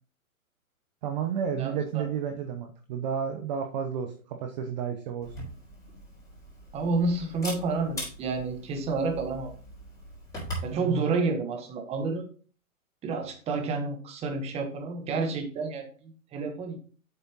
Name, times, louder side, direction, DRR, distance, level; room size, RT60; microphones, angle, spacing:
voice 1, 1.0-5.5 10.7-11.2, right 8 dB, 30° right, 4 dB, 0.8 m, -32 dB
voice 2, 1.6-2.0 6.7-9.5 10.6-12.3 13.0-16.8, right 3 dB, 15° right, 4 dB, 1.3 m, -30 dB
Camera, 5.2-10.7, equal, 10° left, 4.3 m, -41 dB
8.2 x 6.7 x 2.9 m, 0.41 s
hypercardioid pair, 135°, 42 cm